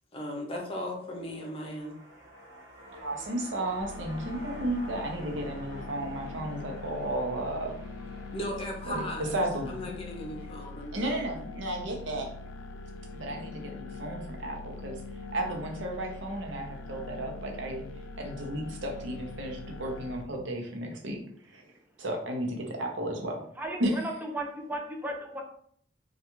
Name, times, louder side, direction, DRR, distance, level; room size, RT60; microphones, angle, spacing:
voice 1, 0.1-2.0 8.3-9.3 9.7-11.3, left 1 dB, 30° left, 0 dB, 0.7 m, -37 dB
sound 1, 1.2-11.5 11.9-12.0, equal, 65° right, 1.2 m, -49 dB
voice 2, 3.0-7.7 8.8-9.1 9.3-9.7 10.9-12.3 13.1-15.0 15.3-17.8 18.2-21.2 21.5-21.6 22.0-23.4 23.8-23.9, right 1 dB, 85° right, 2 dB, 0.7 m, -33 dB
sound 2, 3.8-20.2, left 3 dB, 80° left, 0.3 m, -42 dB
voice 3, 23.6-25.4, right 1 dB, 10° right, 1 dB, 0.4 m, -35 dB
3.4 x 2.4 x 2.9 m, 0.63 s
head